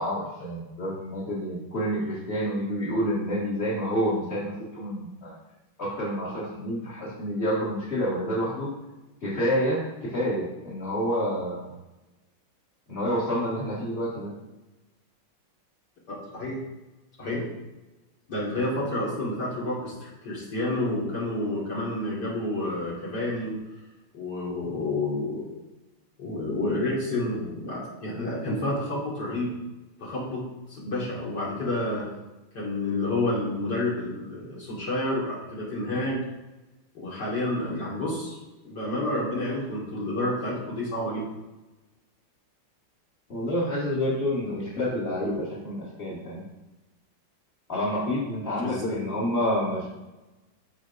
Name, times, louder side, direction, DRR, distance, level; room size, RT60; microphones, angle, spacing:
voice 1, 0.0-5.3 5.8-8.7 9.2-11.7 12.9-14.3 43.3-46.4 47.7-49.9, equal, 25° left, -9 dB, 2.1 m, -28 dB
voice 2, 16.1-16.6 17.2-17.5 18.3-23.6 24.1-25.6 26.2-29.5 30.0-30.4 30.7-32.1 32.5-36.2 36.9-38.4 38.6-41.2 48.6-48.9, left 1 dB, 55° left, -5 dB, 2.4 m, -29 dB
13.5 x 4.9 x 2.6 m, 1.1 s
omnidirectional pair, 2.3 m